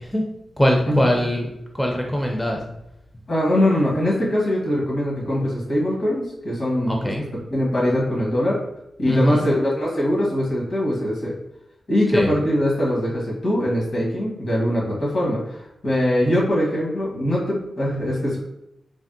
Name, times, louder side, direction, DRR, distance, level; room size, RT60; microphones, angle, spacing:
voice 1, 0.6-1.5 1.7-2.6 6.9-7.2 9.1-9.5 12.1-12.3, equal, 10° left, 1 dB, 0.4 m, -21 dB
voice 2, 3.3-8.6 9.0-11.3 11.9-15.6 15.8-18.4, left 1 dB, 70° left, -4 dB, 1.2 m, -22 dB
3.4 x 2.1 x 2.6 m, 0.82 s
cardioid pair, 65°, 0 cm